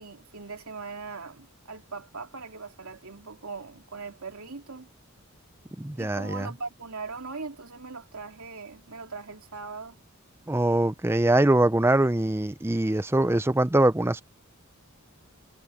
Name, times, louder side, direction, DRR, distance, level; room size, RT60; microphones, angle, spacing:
voice 1, 0.0-4.9 5.9-10.0, right 4 dB, 85° right, 2.5 m, -40 dB
voice 2, 5.8-6.5 10.5-14.2, right 1 dB, 10° right, 0.5 m, -23 dB
head